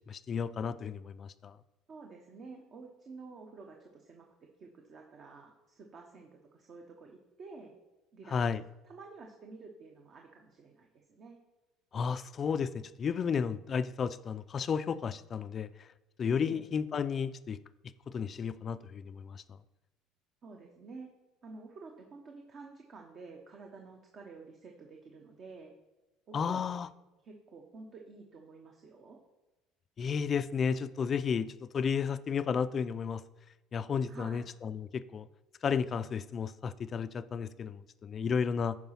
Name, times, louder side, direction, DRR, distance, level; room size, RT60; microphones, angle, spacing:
voice 1, 0.1-1.6 8.3-8.6 11.9-15.9 16.2-17.6 18.1-19.4 26.3-26.9 30.0-33.2 33.7-35.3 35.6-38.8, left 6 dB, 35° left, 14 dB, 0.4 m, -33 dB
voice 2, 1.9-4.3 4.6-7.8 8.1-8.4 8.8-11.4 16.4-16.7 20.4-21.1 21.4-25.7 26.3-26.6 27.2-29.2 34.1-34.5, right 4 dB, 45° right, 2 dB, 1.0 m, -50 dB
9.3 x 4.9 x 5.7 m, 1.0 s
cardioid pair, 110°, 0 cm